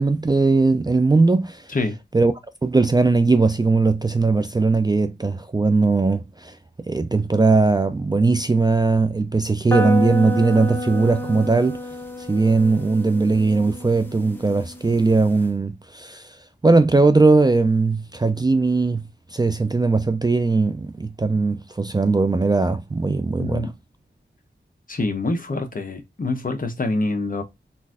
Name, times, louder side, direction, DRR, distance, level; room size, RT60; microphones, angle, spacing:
voice 1, 0.0-1.6 2.1-2.3 2.6-6.5 6.9-11.8 12.3-16.2 16.6-19.0 19.3-23.7, right 3 dB, 20° right, 0.3 m, -19 dB
sound 1, 9.7-15.5, left 1 dB, 10° left, 0.7 m, -30 dB
voice 2, 23.4-23.7 24.9-27.4, left 2 dB, 45° left, 0.8 m, -25 dB
3.9 x 2.5 x 2.4 m
wide cardioid pair, 80°, 20 cm